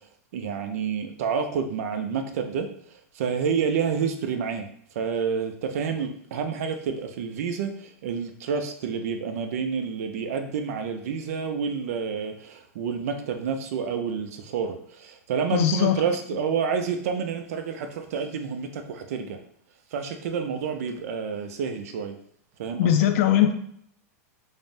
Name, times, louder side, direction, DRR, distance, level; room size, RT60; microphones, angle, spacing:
voice 1, 0.3-2.7 3.1-4.7 5.0-19.4 19.9-22.1 22.6-23.1, right 6 dB, 70° right, 6 dB, 0.4 m, -29 dB
voice 2, 15.5-16.0 22.8-23.5, left 10 dB, 60° left, 7 dB, 0.4 m, -20 dB
3.2 x 2.0 x 2.6 m, 0.66 s
supercardioid pair, 140°, 8 cm